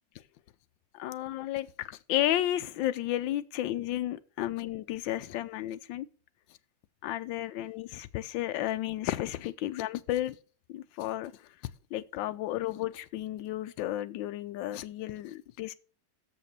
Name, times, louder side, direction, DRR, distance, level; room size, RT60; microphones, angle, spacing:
voice 1, 0.9-6.1 7.0-10.3 10.7-11.3 11.9-15.7, left 13 dB, 80° left, 1.3 m, -33 dB
7.3 x 5.1 x 6.7 m
omnidirectional pair, 2.1 m